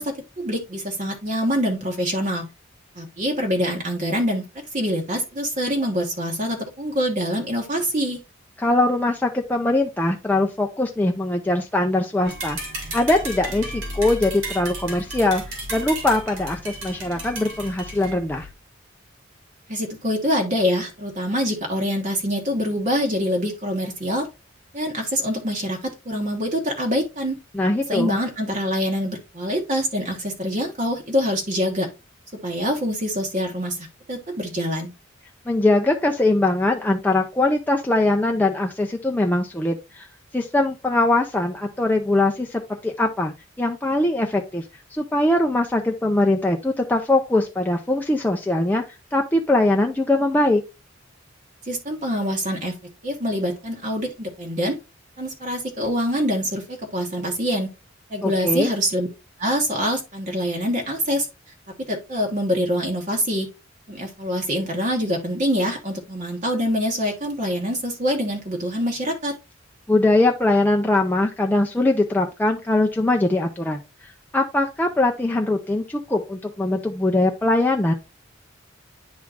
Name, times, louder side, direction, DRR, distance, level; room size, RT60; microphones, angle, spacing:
voice 1, 0.0-2.5 2.9-4.5 4.7-8.2 19.7-24.3 24.7-27.4 27.9-31.9 32.4-34.9 51.7-52.7 53.0-54.8 55.2-57.7 58.1-59.1 59.4-61.3 61.9-63.5 63.9-69.3, equal, 40° right, 1.2 m, -25 dB
voice 2, 8.6-12.6 12.9-15.4 15.7-18.5 27.5-28.2 35.5-40.1 40.3-44.6 44.9-48.8 49.1-50.6 58.2-58.7 69.9-73.8 74.3-77.9, left 2 dB, 10° left, 0.5 m, -21 dB
sound 1, 12.2-18.5, right 1 dB, 80° right, 2.6 m, -34 dB
10.5 x 3.7 x 2.4 m
head